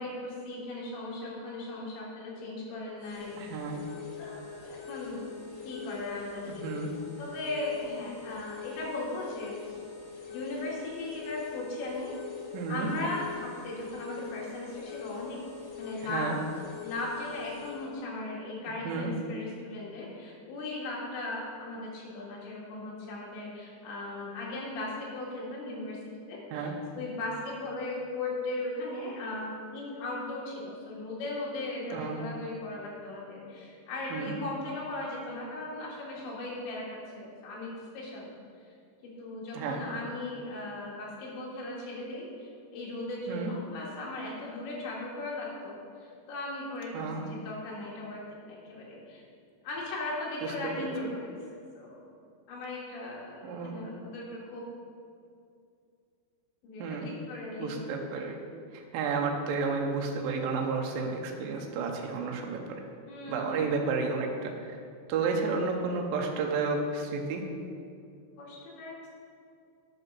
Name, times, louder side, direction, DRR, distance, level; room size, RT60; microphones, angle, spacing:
voice 1, 0.0-3.6 4.2-5.4 5.6-6.7 7.2-9.8 10.3-12.2 12.7-15.4 15.8-16.3 16.8-38.3 39.0-48.2 48.5-49.2 49.6-52.1 52.5-54.7 56.6-57.7 63.1-63.7 68.4-69.0, left 2 dB, 80° left, -4 dB, 4.1 m, -38 dB
sound 1, 3.0-17.9, left 7 dB, 60° left, 2.1 m, -43 dB
voice 2, 3.3-3.9 6.5-6.9 12.5-12.9 16.0-16.4 18.8-19.1 26.5-26.8 31.9-32.2 34.1-34.3 39.5-39.8 43.3-43.5 46.9-47.3 50.4-50.9 53.4-53.9 56.8-57.1 57.6-58.4 58.7-62.6 63.3-64.8 65.1-67.4, right 4 dB, 85° right, 1 dB, 2.0 m, -32 dB
9.6 x 5.4 x 6.1 m, 2.4 s
omnidirectional pair, 5.2 m